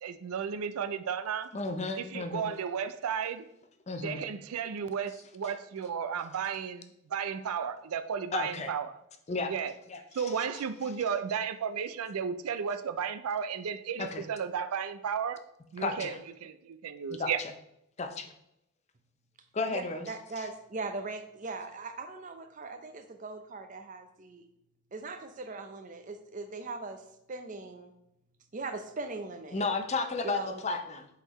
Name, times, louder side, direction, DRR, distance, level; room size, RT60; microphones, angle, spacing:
voice 1, 0.0-1.5 2.0-3.4 4.0-8.9 9.5-9.7 10.1-15.4 15.7-16.1 16.4-17.4, right 7 dB, 85° right, 0.4 m, -33 dB
voice 2, 1.5-2.5 3.9-4.2 5.4-5.5 8.3-8.7 9.3-9.5 9.9-10.6 14.0-14.3 15.8-16.2 17.1-17.5 18.0-18.3 19.5-20.1 29.5-31.1, left 3 dB, 30° left, 0.5 m, -33 dB
voice 3, 19.7-24.4 24.9-27.9 28.5-29.6 30.2-30.6, right 3 dB, 35° right, 0.5 m, -40 dB
8.1 x 3.8 x 3.0 m
head